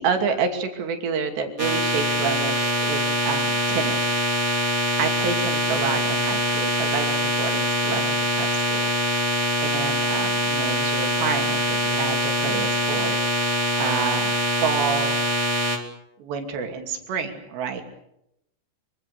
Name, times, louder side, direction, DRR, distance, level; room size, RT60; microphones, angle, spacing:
voice 1, 0.0-4.1 5.0-8.9 9.6-15.2 16.2-17.8, right 6 dB, 85° right, 5 dB, 4.9 m, -29 dB
sound 1, 1.6-15.8, right 1 dB, 20° right, 2.8 m, -23 dB
25.5 x 25.5 x 6.7 m, 0.81 s
omnidirectional pair, 4.8 m